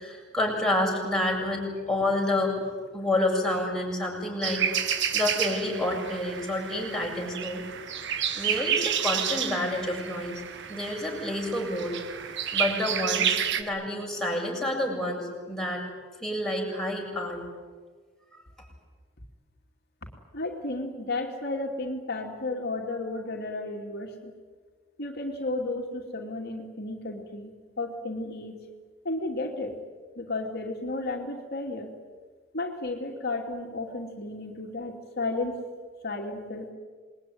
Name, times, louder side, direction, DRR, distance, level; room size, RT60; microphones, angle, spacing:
voice 1, 0.0-2.6 2.9-7.6 8.3-10.4 10.7-12.0 12.5-15.8 16.2-17.4, left 1 dB, 5° left, -2 dB, 7.5 m, -29 dB
sound 1, 4.4-13.6, right 8 dB, 60° right, 1.7 m, -30 dB
voice 2, 20.3-24.3 25.0-28.5 29.0-29.8 30.2-31.9 32.5-35.6 36.0-36.7, left 2 dB, 50° left, 0 dB, 2.7 m, -33 dB
27.5 x 21.0 x 9.6 m, 1.5 s
head